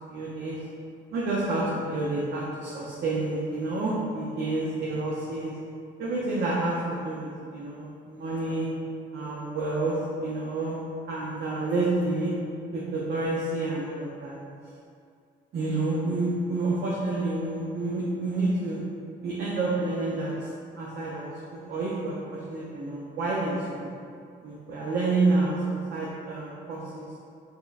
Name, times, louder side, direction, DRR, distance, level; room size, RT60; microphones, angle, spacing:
voice 1, 0.1-0.6 1.1-5.6 6.0-8.7 9.1-10.8 11.1-12.3 12.7-14.4 15.5-18.8 19.2-20.5 20.8-23.9 24.4-27.1, right 2 dB, 60° right, -6 dB, 0.6 m, -29 dB
4.2 x 3.4 x 2.5 m, 2.4 s
cardioid pair, 90°, 20 cm